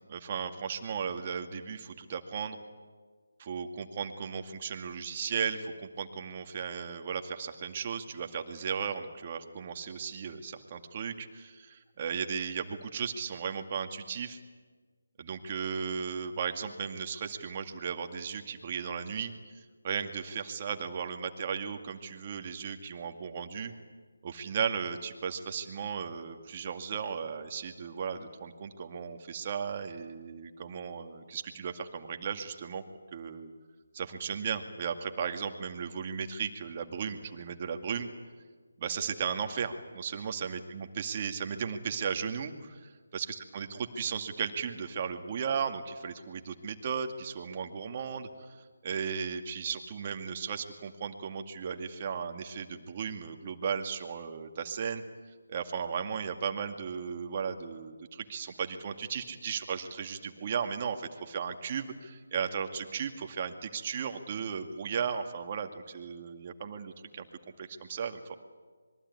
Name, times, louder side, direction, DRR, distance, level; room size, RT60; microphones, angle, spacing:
voice 1, 0.1-2.6 3.4-14.4 15.2-19.3 19.8-23.7 24.2-32.8 33.1-33.5 33.9-38.1 38.8-43.7 44.0-48.6 48.8-55.0 55.5-67.3 67.6-68.3, right 6 dB, 30° right, 6 dB, 2.2 m, -35 dB
26.0 x 22.5 x 9.7 m, 1.5 s
figure-of-eight pair, 155°, 0 cm